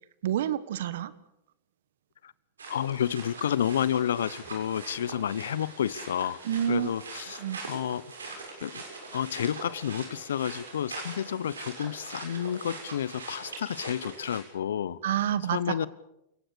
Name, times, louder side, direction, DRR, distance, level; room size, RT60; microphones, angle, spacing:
voice 1, 0.2-1.1 6.4-6.9 7.4-7.6 15.0-15.9, right 11 dB, 70° right, 16 dB, 1.5 m, -28 dB
sound 1, 2.6-14.4, right 3 dB, 85° right, 6.9 m, -42 dB
voice 2, 2.7-6.4 6.7-7.4 7.7-8.1 8.6-8.8 9.1-15.0 15.5-15.9, left 9 dB, 75° left, 20 dB, 0.9 m, -30 dB
29.0 x 18.0 x 7.0 m, 0.84 s
hypercardioid pair, 100°, 0 cm